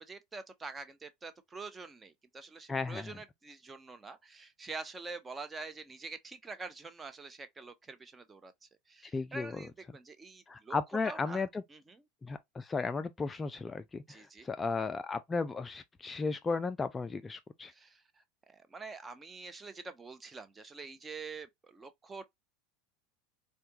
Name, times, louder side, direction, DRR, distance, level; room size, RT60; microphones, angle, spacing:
voice 1, 0.0-10.8 11.1-11.4 11.7-12.0 14.1-14.5 17.7-18.0 18.5-22.3, right 3 dB, 20° right, 0.6 m, -46 dB
voice 2, 2.7-3.2 9.1-9.5 10.5-11.6 12.2-17.7, left 4 dB, 20° left, 0.3 m, -35 dB
4.4 x 2.3 x 2.7 m
figure-of-eight pair, 75°, 0 cm